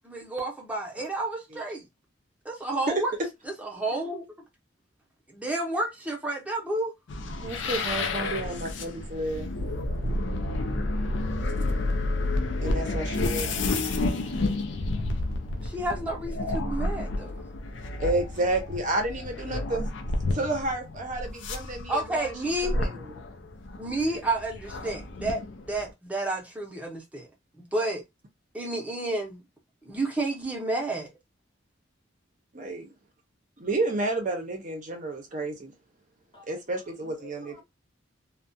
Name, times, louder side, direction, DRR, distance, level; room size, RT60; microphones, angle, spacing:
voice 1, 0.0-1.9 2.4-3.1 3.4-4.3 5.3-6.9 15.6-17.5 21.9-22.8 23.8-25.4 25.7-27.3 27.5-28.0 28.5-29.4 29.9-31.1, right 2 dB, 5° right, 0.7 m, -30 dB
sound 1, 7.1-25.9, left 2 dB, 70° left, 0.4 m, -31 dB
voice 2, 7.4-9.5 12.6-13.5 18.0-19.9 20.3-22.3 22.6-23.1 32.5-32.9 33.6-35.7 36.5-37.5, right 2 dB, 40° right, 0.6 m, -30 dB
sound 2, 9.6-15.0, equal, 90° right, 0.6 m, -36 dB
voice 3, 36.3-37.6, left 4 dB, 25° left, 0.8 m, -52 dB
2.3 x 2.1 x 2.6 m
head